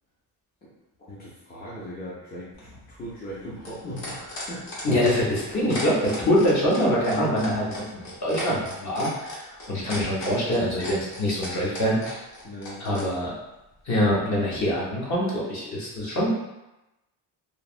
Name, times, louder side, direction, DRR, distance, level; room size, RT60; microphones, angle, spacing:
voice 1, 1.1-4.7 12.4-13.1, equal, 20° left, -8 dB, 0.6 m, -39 dB
sound 1, 2.5-13.1 14.3-14.4, left 2 dB, 80° left, 1.0 m, -37 dB
voice 2, 4.8-12.2 12.8-13.3 13.9-16.3, equal, 40° left, -5 dB, 0.9 m, -24 dB
3.2 x 2.1 x 2.4 m, 0.96 s
cardioid pair, 140°, 42 cm